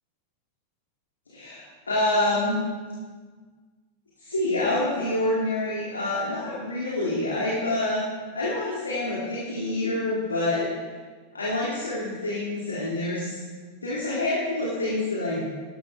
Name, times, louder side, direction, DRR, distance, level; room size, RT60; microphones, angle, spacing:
voice 1, 1.3-2.6 4.2-8.0 8.3-10.7 11.3-13.4 13.8-15.4, left 2 dB, 75° left, -6 dB, 2.7 m, -27 dB
14.0 x 12.0 x 3.5 m, 1.5 s
figure-of-eight pair, 90°, 0 cm